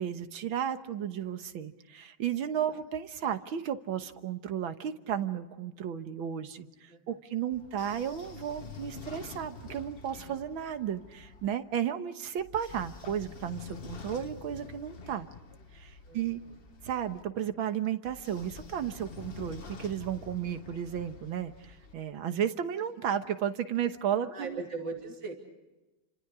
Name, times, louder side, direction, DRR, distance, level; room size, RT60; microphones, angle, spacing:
voice 1, 0.0-15.3 15.7-16.4 16.8-24.6, right 9 dB, 85° right, 9 dB, 2.0 m, -33 dB
voice 2, 6.9-7.2 16.1-16.6 24.2-25.3, right 4 dB, 65° right, 2 dB, 3.5 m, -40 dB
Train / Sliding door, 7.5-11.5 12.4-17.2 18.1-21.9, left 5 dB, 35° left, 1.1 m, -47 dB
29.5 x 26.0 x 4.9 m, 1.1 s
omnidirectional pair, 2.1 m